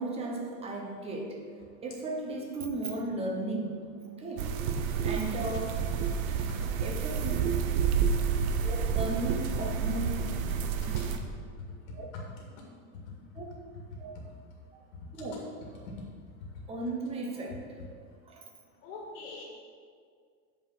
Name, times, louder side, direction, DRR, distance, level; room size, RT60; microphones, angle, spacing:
voice 1, 0.0-1.4 1.8-3.9 4.2-4.5 5.0-5.8 6.8-7.4 8.6-10.2 11.9-12.1 13.3-13.5 14.0-14.1 15.1-15.4 16.7-17.6 18.3-18.4, right 2 dB, 15° right, 1 dB, 0.8 m, -35 dB
sound 1, 4.4-11.2, right 6 dB, 80° right, 0.9 m, -29 dB
voice 2, 12.1-12.5 14.1-14.2 15.9-16.0 18.8-19.4, left 3 dB, 90° left, -2 dB, 2.1 m, -42 dB
8.7 x 4.9 x 5.8 m, 2.1 s
supercardioid pair, 170°, 41 cm